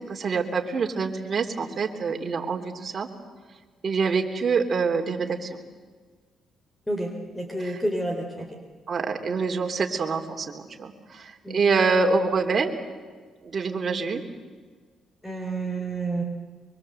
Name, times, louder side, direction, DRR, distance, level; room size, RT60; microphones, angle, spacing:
voice 1, 0.0-3.1 3.8-5.6 7.6-7.8 8.9-12.7 13.4-14.2, right 4 dB, 45° right, 3 dB, 3.2 m, -26 dB
voice 2, 6.9-8.6 11.4-11.6 15.2-16.2, right 2 dB, 10° left, 4 dB, 3.6 m, -29 dB
24.0 x 23.5 x 7.9 m, 1.5 s
cardioid pair, 90°, 0 cm